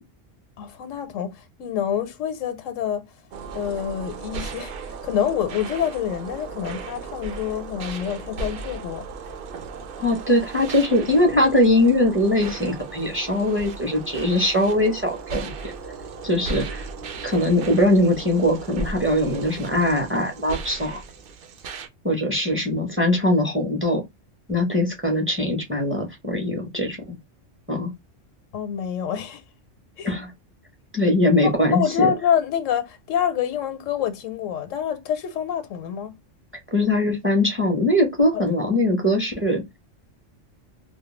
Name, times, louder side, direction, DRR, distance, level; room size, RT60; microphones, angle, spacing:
voice 1, 0.6-3.0 3.5-9.1 28.5-29.4 30.0-30.1 31.4-36.2 38.3-38.7, left 9 dB, 90° left, 1.0 m, -27 dB
sound 1, 3.3-21.9, right 4 dB, 60° right, 0.6 m, -36 dB
voice 2, 10.0-15.7 16.2-16.8 17.2-21.0 22.0-24.0 24.5-27.1 27.7-27.9 30.0-30.3 30.9-32.1 36.7-39.6, left 1 dB, 15° right, 0.5 m, -21 dB
2.3 x 2.2 x 2.9 m
omnidirectional pair, 1.3 m